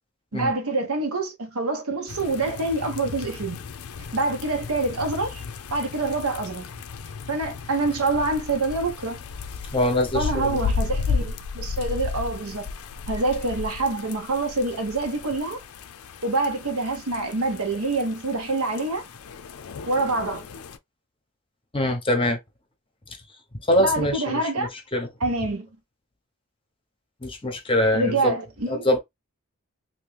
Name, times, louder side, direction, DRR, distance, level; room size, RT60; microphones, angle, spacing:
voice 1, 0.3-3.6 4.1-5.4 5.7-6.7 7.3-9.2 10.1-12.7 13.1-15.6 16.2-19.0 19.9-20.5 23.8-24.7 25.2-25.7 27.9-28.9, right 2 dB, 75° right, 0.9 m, -26 dB
sound 1, 2.1-20.8, left 5 dB, 75° left, 0.5 m, -34 dB
voice 2, 9.7-10.6 21.7-22.4 23.7-25.1 27.2-28.3 28.7-29.0, left 1 dB, 25° left, 0.8 m, -23 dB
2.9 x 2.6 x 3.3 m
head